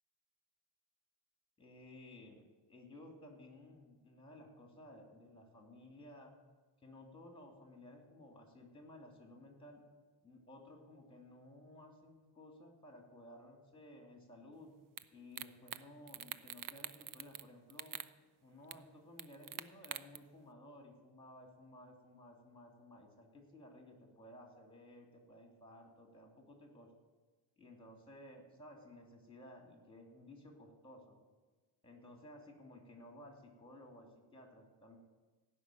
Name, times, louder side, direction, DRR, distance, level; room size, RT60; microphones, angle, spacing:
voice 1, 1.6-2.4 2.7-6.3 6.8-9.8 10.2-14.7 15.1-18.0 18.4-26.9 27.6-31.2 31.8-35.0, left 1 dB, 10° left, 2 dB, 2.8 m, -56 dB
sound 1, 15.0-15.1 15.4-15.8 16.1-17.4 17.7-18.1 18.7-18.8 19.2-20.2, right 11 dB, 45° right, 0.5 m, -44 dB
16.0 x 6.2 x 9.2 m, 1.3 s
cardioid pair, 140°, 48 cm